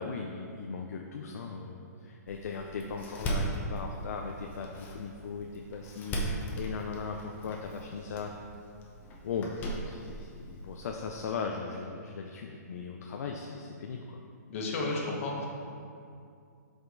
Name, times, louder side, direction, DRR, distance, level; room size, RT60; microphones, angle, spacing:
voice 1, 0.0-8.3 9.2-14.2, left 5 dB, 65° left, 2 dB, 0.6 m, -38 dB
Door, 2.3-11.3, right 1 dB, 20° left, 0.9 m, -38 dB
voice 2, 14.5-15.5, left 2 dB, 50° left, -1 dB, 1.5 m, -32 dB
8.1 x 5.2 x 4.0 m, 2.4 s
hypercardioid pair, 150°, 9 cm